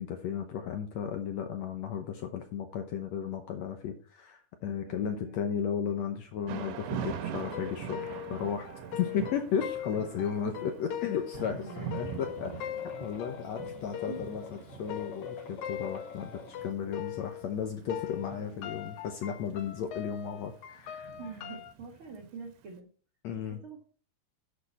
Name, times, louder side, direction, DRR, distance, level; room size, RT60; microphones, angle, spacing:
voice 1, 0.0-8.7 9.0-12.5 13.0-14.4 14.7-21.1 23.2-23.6, left 8 dB, 90° left, 5 dB, 1.5 m, -34 dB
voice 2, 4.8-5.5 9.1-9.2 10.4-10.7 11.4-12.3 14.1-14.2 18.3-18.7 21.2-22.9 23.4-23.8, right 4 dB, 45° right, 1 dB, 1.9 m, -46 dB
Thunder / Rain, 6.5-22.5, right 8 dB, 80° right, 3.1 m, -43 dB
sound 1, 7.4-17.6 17.9-21.7, left 11 dB, 70° left, 1.8 m, -41 dB
sound 2, 11.6-16.7, left 4 dB, 45° left, 2.2 m, -49 dB
12.0 x 6.9 x 4.2 m, 0.40 s
omnidirectional pair, 4.5 m